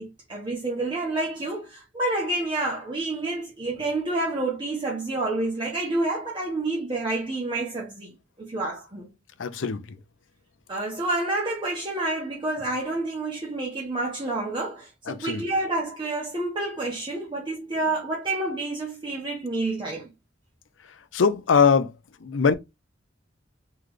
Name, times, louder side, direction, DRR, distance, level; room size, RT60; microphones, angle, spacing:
voice 1, 0.0-9.1 10.7-20.1, right 2 dB, 25° right, 1.1 m, -29 dB
voice 2, 9.4-9.8 15.1-15.4 21.1-21.9 22.2-22.5, left 5 dB, 85° left, 0.6 m, -21 dB
3.9 x 3.3 x 3.2 m
head